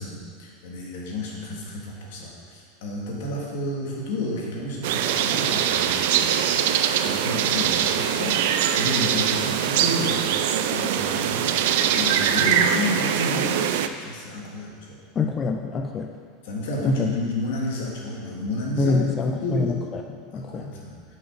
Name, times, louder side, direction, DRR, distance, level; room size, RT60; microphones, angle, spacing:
voice 1, 0.0-6.7 7.0-10.3 10.7-11.6 11.9-13.6 14.0-15.0 16.4-19.0 19.4-19.8 20.3-21.0, left 1 dB, 75° left, -2 dB, 1.8 m, -31 dB
sound 1, 4.8-13.9, right 9 dB, 70° right, 0.4 m, -22 dB
voice 2, 15.2-16.1 16.8-17.1 18.8-20.8, left 4 dB, 25° left, 3 dB, 0.4 m, -26 dB
6.3 x 5.7 x 4.9 m, 2.1 s
supercardioid pair, 150°, 0 cm